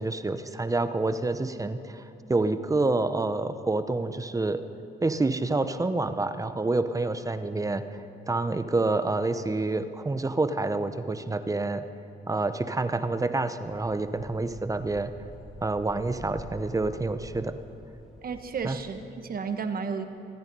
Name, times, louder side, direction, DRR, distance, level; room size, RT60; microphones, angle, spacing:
voice 1, 0.0-2.0 2.3-4.6 5.0-11.8 12.3-15.1 15.6-17.6 18.6-18.8, right 2 dB, 15° right, 10 dB, 0.8 m, -28 dB
sound 1, 13.6-19.1, right 1 dB, ahead, 3.0 m, -48 dB
voice 2, 18.2-20.0, right 5 dB, 50° right, 8 dB, 1.2 m, -32 dB
24.0 x 9.7 x 5.4 m, 3.0 s
cardioid pair, 90°, 20 cm